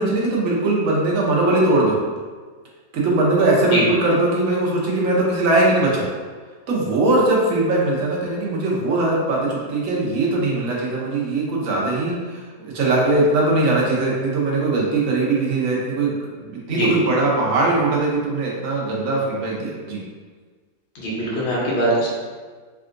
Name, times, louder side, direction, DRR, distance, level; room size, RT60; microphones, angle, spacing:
voice 1, 0.0-2.0 2.9-6.1 6.7-20.0, right 2 dB, 60° right, -4 dB, 1.0 m, -20 dB
voice 2, 20.9-22.1, right 1 dB, 75° left, -6 dB, 1.4 m, -22 dB
3.6 x 2.3 x 2.5 m, 1.5 s
omnidirectional pair, 1.8 m